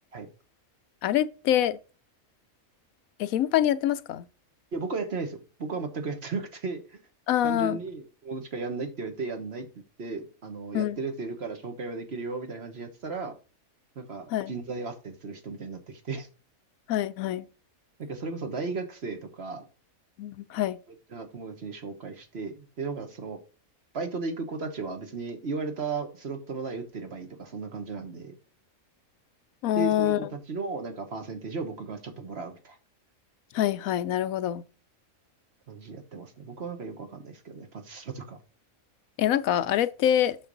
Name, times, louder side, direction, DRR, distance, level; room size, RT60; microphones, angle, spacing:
voice 1, 1.0-1.8 3.2-4.3 7.3-7.8 10.7-11.0 14.3-14.5 16.9-17.5 20.2-20.8 29.6-30.2 33.5-34.6 39.2-40.4, left 11 dB, 80° left, 1.0 m, -25 dB
voice 2, 4.7-6.8 7.4-9.7 10.0-13.3 13.9-16.3 18.0-19.6 21.1-23.4 23.9-28.4 29.7-32.8 35.7-38.4, right 4 dB, 50° right, 1.4 m, -35 dB
6.5 x 6.4 x 3.9 m
omnidirectional pair, 1.5 m